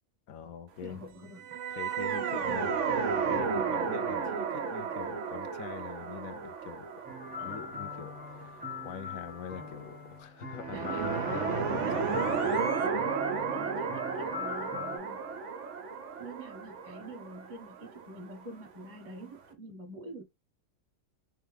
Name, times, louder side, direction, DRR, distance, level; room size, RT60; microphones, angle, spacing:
voice 1, 0.3-1.0 1.7-3.0 3.3-6.9 7.4-13.1 13.5-13.6, left 7 dB, 70° left, 1.1 m, -44 dB
voice 2, 0.8-2.6 7.4-7.7 9.5-9.8 10.7-12.1 12.7-13.2 13.5-15.2 16.2-20.2, right 2 dB, 25° right, 1.6 m, -46 dB
sound 1, 1.4-8.6 10.5-18.3, right 6 dB, 60° right, 1.1 m, -33 dB
sound 2, 7.0-15.0, left 5 dB, 5° right, 1.2 m, -42 dB
3.4 x 3.4 x 3.4 m
omnidirectional pair, 1.5 m